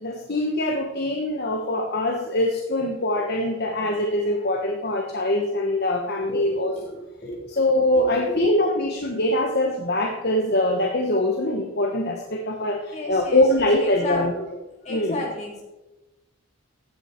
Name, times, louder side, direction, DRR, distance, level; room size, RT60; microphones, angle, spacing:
voice 1, 0.0-6.7 7.5-14.3 14.9-15.2, left 1 dB, 50° left, 2 dB, 1.2 m, -23 dB
voice 2, 6.8-7.4 7.9-8.4 12.9-14.2 14.8-15.6, left 2 dB, 30° left, -3 dB, 3.8 m, -33 dB
15.5 x 10.5 x 4.5 m, 1.0 s
head